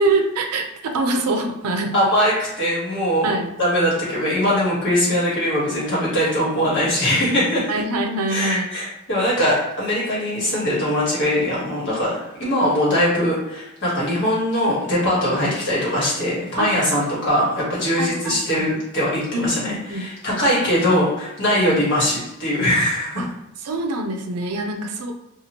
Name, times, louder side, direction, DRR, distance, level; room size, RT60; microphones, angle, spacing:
voice 1, 0.0-1.9 3.2-3.5 7.7-8.7 15.4-15.5 16.6-17.0 18.0-18.7 19.3-20.1 20.4-20.5 21.6-21.8 23.2-23.3 23.6-25.1, right 2 dB, 90° right, 3 dB, 0.5 m, -24 dB
voice 2, 1.9-3.3 3.6-7.7 8.3-23.2, equal, 55° left, -6 dB, 1.3 m, -21 dB
2.8 x 2.4 x 2.9 m, 0.88 s
head